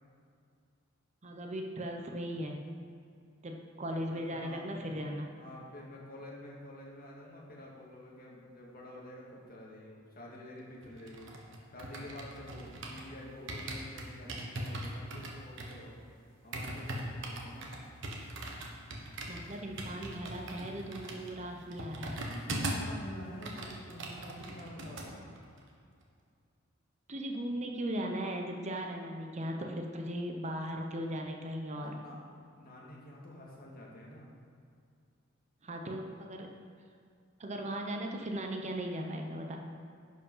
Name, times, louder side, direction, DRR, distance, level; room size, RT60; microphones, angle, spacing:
voice 1, 1.2-2.6 3.4-5.3 19.3-22.2 27.1-32.0 35.6-36.6 37.4-39.6, equal, 35° right, 2 dB, 0.7 m, -38 dB
voice 2, 4.1-5.0 5.4-11.3 11.7-16.0 16.4-17.7 22.3-25.3 31.8-32.2 32.6-34.3, left 1 dB, 45° left, -3 dB, 1.9 m, -48 dB
sound 1, 10.8-13.1 13.5-23.0 23.2-25.1 25.4-25.6, right 1 dB, 65° right, 1.2 m, -40 dB
11.0 x 5.1 x 5.4 m, 2.3 s
head